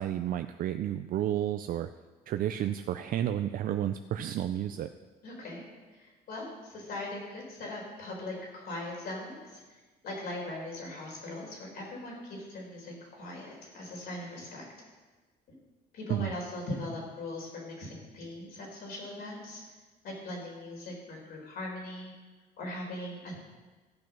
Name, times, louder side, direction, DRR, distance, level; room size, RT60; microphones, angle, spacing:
voice 1, 0.0-1.9 2.3-4.9 16.1-16.3, right 11 dB, 55° right, 9 dB, 0.4 m, -31 dB
voice 2, 5.2-5.6 5.9-9.6 10.0-14.7 15.9-19.6 20.0-22.1 22.6-23.4, left 1 dB, 65° left, -1 dB, 4.3 m, -40 dB
14.0 x 6.3 x 6.0 m, 1.3 s
cardioid pair, 110°, 17 cm